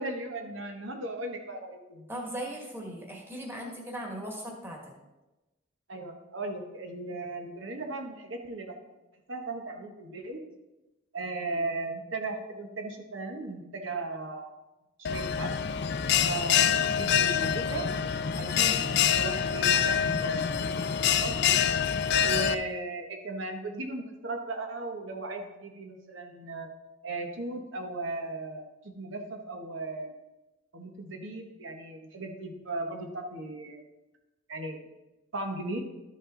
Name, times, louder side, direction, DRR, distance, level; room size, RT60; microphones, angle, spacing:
voice 1, 0.0-2.1 5.9-8.8 9.3-10.4 11.1-14.5 15.0-15.5 16.2-17.9 18.4-20.7 21.2-21.5 22.2-26.7 27.0-30.1 30.7-33.8 34.5-34.8 35.3-35.8, right 2 dB, 80° right, 4 dB, 1.1 m, -37 dB
voice 2, 2.1-4.9 16.5-16.9 18.5-18.8 22.3-22.5, right 1 dB, 10° right, -1 dB, 1.7 m, -39 dB
Bell, 15.0-22.5, left 8 dB, 60° left, 0.4 m, -26 dB
12.5 x 5.5 x 3.8 m, 1.1 s
head